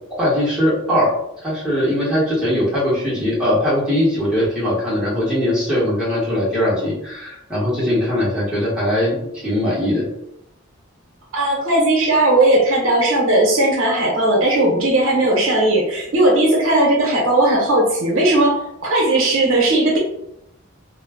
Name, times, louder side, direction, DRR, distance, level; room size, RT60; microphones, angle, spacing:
voice 1, 0.2-1.1 1.4-10.0, left 1 dB, 5° right, -9 dB, 1.1 m, -20 dB
voice 2, 11.3-20.0, right 1 dB, 80° right, -2 dB, 0.8 m, -17 dB
2.2 x 2.1 x 3.4 m, 0.79 s
head